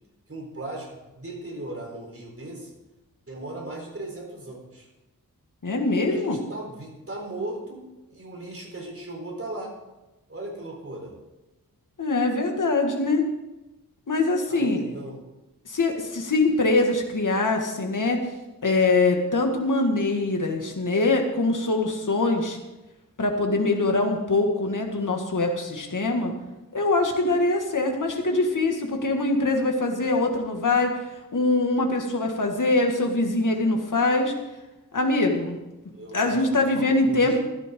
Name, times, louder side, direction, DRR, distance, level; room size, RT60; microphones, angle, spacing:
voice 1, 0.3-0.9 1.2-2.8 3.3-4.9 6.1-7.8 8.1-9.7 10.3-11.2 14.5-15.2 35.9-36.4 36.7-37.4, right 2 dB, 40° right, 0 dB, 4.0 m, -37 dB
voice 2, 5.6-6.4 12.0-13.2 14.1-14.8 15.7-18.2 18.6-22.6 23.2-26.3 26.7-31.0 31.3-34.3 34.9-35.6 36.1-37.4, left 2 dB, 60° left, 2 dB, 2.1 m, -23 dB
15.5 x 12.0 x 3.9 m, 1.0 s
wide cardioid pair, 90°, 35 cm